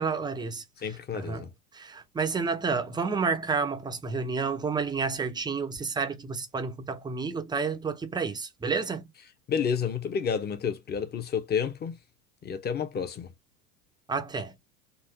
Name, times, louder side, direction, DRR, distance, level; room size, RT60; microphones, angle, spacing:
voice 1, 0.0-1.5 1.7-9.0 14.1-14.5, right 5 dB, 10° right, 0.6 m, -30 dB
voice 2, 0.8-1.5 9.5-12.0 12.4-13.3, left 7 dB, 20° left, 0.9 m, -30 dB
4.0 x 2.6 x 2.8 m
figure-of-eight pair, 85°, 50 cm